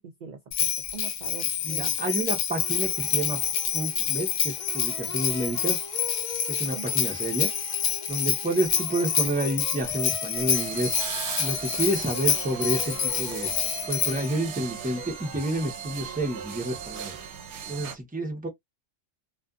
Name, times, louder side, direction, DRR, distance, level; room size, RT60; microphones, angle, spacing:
voice 1, 0.2-1.9 6.7-6.9, right 4 dB, 55° right, 0.5 m, -42 dB
Bell, 0.5-14.3, left 8 dB, 65° left, 0.8 m, -28 dB
voice 2, 1.6-3.4 3.7-5.8 6.5-7.5 8.1-10.9 11.4-13.5 13.9-17.1 17.7-18.5, right 1 dB, 10° right, 0.6 m, -29 dB
sound 1, 2.6-17.6, right 1 dB, 30° left, 1.3 m, -43 dB
sound 2, 10.5-18.0, right 8 dB, 75° right, 0.9 m, -37 dB
2.5 x 2.3 x 2.3 m
omnidirectional pair, 1.2 m